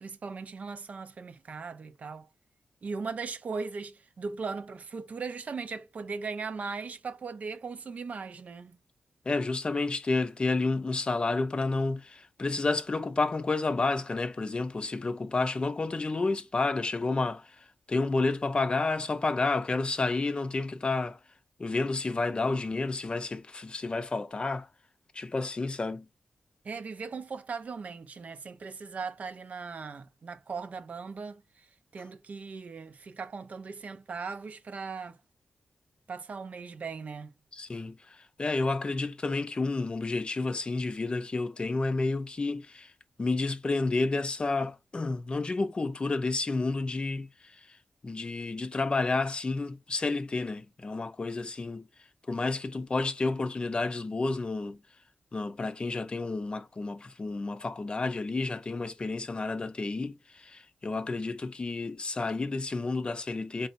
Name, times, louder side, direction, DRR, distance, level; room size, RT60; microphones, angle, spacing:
voice 1, 0.0-2.3 2.8-8.8 26.6-31.7 31.9-35.2 36.1-37.3, right 4 dB, 60° right, 0.5 m, -38 dB
voice 2, 9.3-21.2 21.6-24.7 25.1-26.1 37.5-42.9 43.2-47.8 48.0-51.9 52.3-54.8 55.3-63.7, left 3 dB, 35° left, 0.5 m, -30 dB
4.2 x 3.3 x 2.6 m
wide cardioid pair, 90°, 3 cm